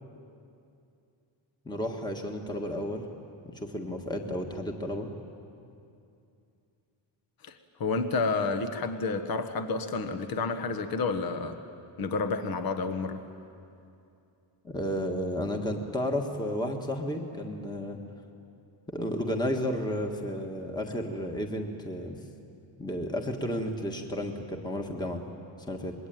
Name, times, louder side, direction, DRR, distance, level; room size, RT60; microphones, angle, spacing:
voice 1, 1.6-3.0 3.5-5.1 14.6-18.0 18.9-22.2 22.8-25.2 25.7-25.9, equal, 10° left, 3 dB, 1.6 m, -32 dB
voice 2, 7.4-11.6 12.0-13.2, left 4 dB, 50° left, 8 dB, 1.4 m, -30 dB
26.0 x 21.5 x 9.3 m, 2.6 s
cardioid pair, 160°, 47 cm